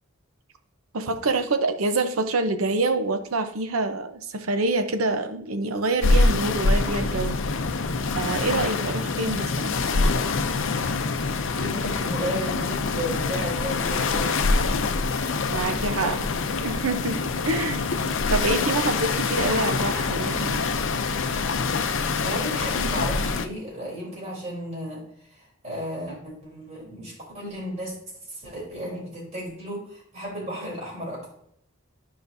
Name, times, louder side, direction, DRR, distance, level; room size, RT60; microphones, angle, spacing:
voice 1, 0.9-7.4 8.1-9.8 15.5-16.2 16.6-17.8 18.3-20.6, right 3 dB, 85° right, 8 dB, 0.8 m, -26 dB
sound 1, 6.0-23.5, left 3 dB, 65° left, 0.6 m, -25 dB
voice 2, 11.6-15.1 15.8-16.2 19.4-20.0 22.0-27.9 28.3-31.3, equal, 35° right, -3 dB, 3.5 m, -34 dB
12.0 x 5.2 x 2.7 m, 0.68 s
head